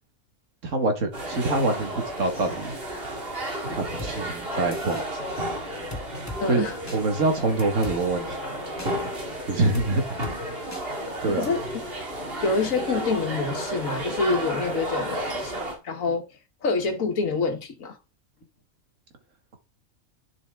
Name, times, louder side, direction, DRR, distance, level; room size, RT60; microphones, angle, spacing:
voice 1, 0.6-2.7 3.7-5.2 6.5-6.6 6.9-8.4 9.5-10.2 11.2-11.5, right 3 dB, 65° right, 2.0 m, -25 dB
sound 1, 1.1-15.7, right 1 dB, 45° right, 2.4 m, -32 dB
sound 2, 4.0-4.1 4.7-5.1 5.9-6.4 6.9-7.0 7.6-8.0 8.8-8.9 9.7-9.9 10.2-10.4 10.7-10.8 11.4-11.5, left 2 dB, 10° left, 1.2 m, -37 dB
voice 2, 6.4-6.8 11.3-11.6 12.2-15.5 15.8-16.2 16.6-18.0, left 4 dB, 70° left, 1.7 m, -26 dB
11.0 x 5.2 x 3.6 m
omnidirectional pair, 1.4 m